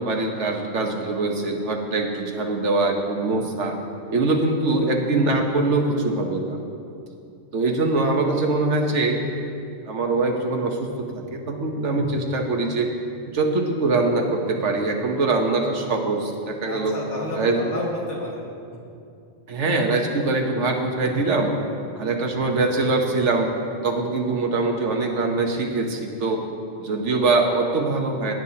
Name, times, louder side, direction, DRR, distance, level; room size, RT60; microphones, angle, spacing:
voice 1, 0.0-3.8 4.1-6.6 7.5-9.2 9.9-12.9 13.3-16.9 17.4-17.6 19.5-21.5 22.0-23.5 23.8-26.4 26.8-28.3, right 3 dB, 85° right, 3 dB, 1.4 m, -23 dB
voice 2, 16.7-18.8, left 1 dB, 80° left, -4 dB, 2.3 m, -31 dB
17.0 x 9.0 x 2.9 m, 2.5 s
omnidirectional pair, 1.2 m